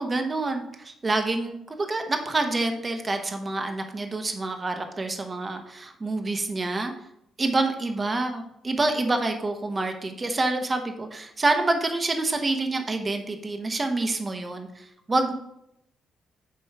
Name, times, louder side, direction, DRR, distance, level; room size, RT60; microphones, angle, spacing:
voice 1, 0.0-6.9 7.4-15.3, right 2 dB, 30° right, 5 dB, 0.9 m, -27 dB
7.7 x 3.1 x 4.7 m, 0.78 s
cardioid pair, 90°, 0 cm